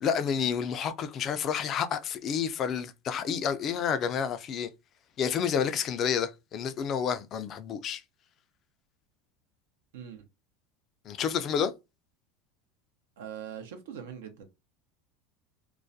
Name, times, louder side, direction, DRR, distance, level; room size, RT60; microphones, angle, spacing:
voice 1, 0.0-4.7 5.2-8.0 11.1-11.7, left 7 dB, 40° left, 0.3 m, -29 dB
voice 2, 9.9-10.3 13.2-14.5, right 8 dB, 85° right, 0.6 m, -42 dB
2.3 x 2.1 x 2.6 m
supercardioid pair, 110°, 0 cm